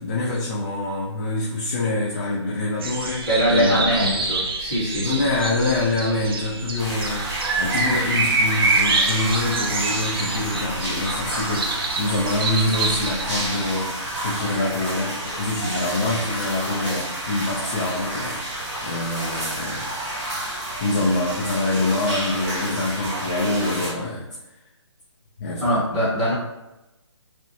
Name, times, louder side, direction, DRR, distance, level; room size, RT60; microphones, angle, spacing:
voice 1, 0.0-4.2 5.0-11.7 12.0-18.4 18.8-19.9 20.8-24.3 25.4-25.7, left 2 dB, 35° left, -5 dB, 0.4 m, -25 dB
sound 1, 2.8-13.7, right 3 dB, 50° right, 0.4 m, -26 dB
voice 2, 3.3-5.2 25.6-26.3, equal, 15° left, -10 dB, 1.1 m, -22 dB
sound 2, 6.8-23.9, right 1 dB, 25° right, 0.8 m, -30 dB
2.3 x 2.1 x 2.7 m, 0.98 s
hypercardioid pair, 160°, 16 cm